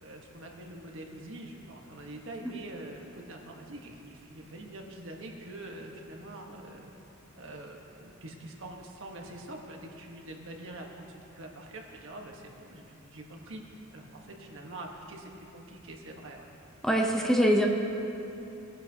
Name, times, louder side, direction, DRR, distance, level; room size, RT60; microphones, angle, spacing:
voice 1, 0.0-6.9 7.3-16.5, right 1 dB, 65° right, 1 dB, 1.3 m, -45 dB
voice 2, 16.8-17.7, equal, ahead, 1 dB, 0.6 m, -24 dB
19.0 x 9.9 x 2.8 m, 2.9 s
head